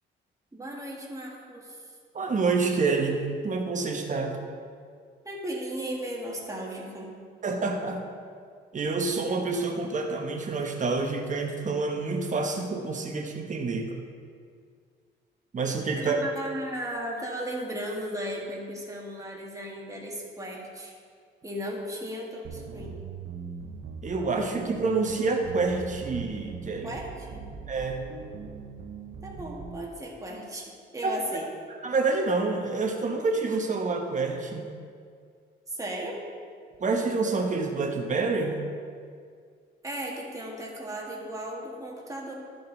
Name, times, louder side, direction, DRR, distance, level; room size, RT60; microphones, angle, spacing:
voice 1, 0.5-1.8 5.2-7.1 16.0-20.9 21.4-23.0 26.8-27.4 29.2-31.5 35.7-36.2 39.8-42.3, right 1 dB, 15° right, -2 dB, 1.8 m, -36 dB
voice 2, 2.1-4.4 7.4-8.0 8.7-14.0 15.5-16.2 24.0-27.0 27.7-28.0 31.0-31.4 31.7-34.7 36.8-38.6, right 3 dB, 40° right, 3 dB, 1.2 m, -28 dB
sound 1, 22.4-29.8, right 5 dB, 65° right, 0.8 m, -40 dB
12.5 x 5.3 x 4.0 m, 2.1 s
cardioid pair, 90°, 20 cm